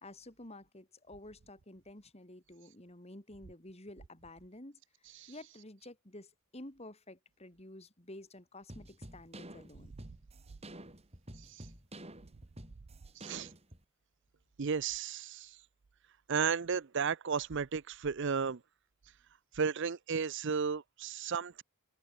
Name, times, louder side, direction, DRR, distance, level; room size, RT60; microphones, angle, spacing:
voice 1, 0.0-4.8 5.3-9.9, left 1 dB, 30° left, 3.1 m, -51 dB
sound 1, 8.7-13.8, right 1 dB, 30° right, 4.3 m, -50 dB
voice 2, 13.2-13.5 14.6-15.6 16.3-18.6 19.5-21.6, right 6 dB, 55° right, 0.6 m, -33 dB
open air
head